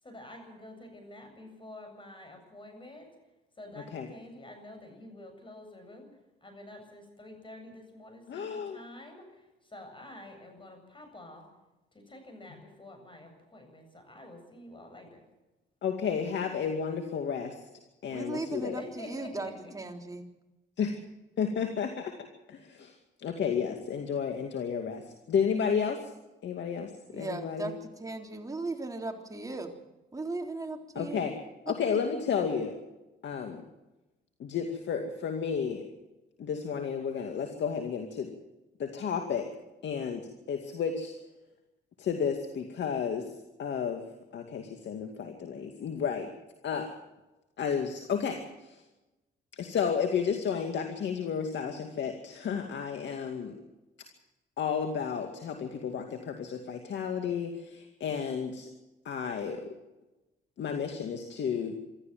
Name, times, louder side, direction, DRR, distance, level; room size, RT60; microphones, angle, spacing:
voice 1, 0.0-3.1 3.6-6.1 6.4-11.5 11.9-15.2 18.8-19.7, left 1 dB, 25° left, 5 dB, 7.9 m, -48 dB
voice 2, 8.3-8.8 15.8-17.6 18.0-18.8 20.8-20.9 21.4-22.1 22.5-22.9 23.2-25.0 25.3-26.1 26.4-27.7 31.0-31.3 31.7-32.8 33.2-33.6 34.4-35.8 36.4-38.3 38.8-39.5 39.8-41.1 42.0-43.3 43.6-44.0 44.3-46.3 46.6-46.9 47.6-48.8 49.5-53.5 54.6-58.7 59.0-59.7 60.6-61.7, left 7 dB, 65° left, 5 dB, 2.3 m, -32 dB
voice 3, 18.1-20.3 27.1-29.8 30.1-31.2 31.7-31.8, right 2 dB, 15° right, 2 dB, 3.6 m, -37 dB
25.5 x 13.5 x 7.6 m, 1.0 s
cardioid pair, 90°, 20 cm